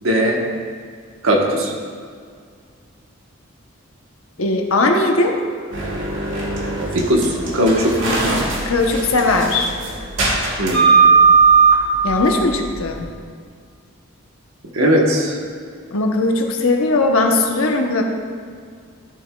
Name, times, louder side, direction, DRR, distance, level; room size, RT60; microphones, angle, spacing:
voice 1, 0.0-0.4 1.2-1.7 6.9-7.9 10.6-10.9 14.7-15.4, equal, 85° right, 0 dB, 1.2 m, -18 dB
voice 2, 4.4-5.4 8.7-9.7 12.0-13.1 15.9-18.0, left 2 dB, 90° left, 2 dB, 0.9 m, -18 dB
sound 1, 5.7-13.1, right 4 dB, 65° right, 1.6 m, -17 dB
13.0 x 7.1 x 2.3 m, 2.1 s
head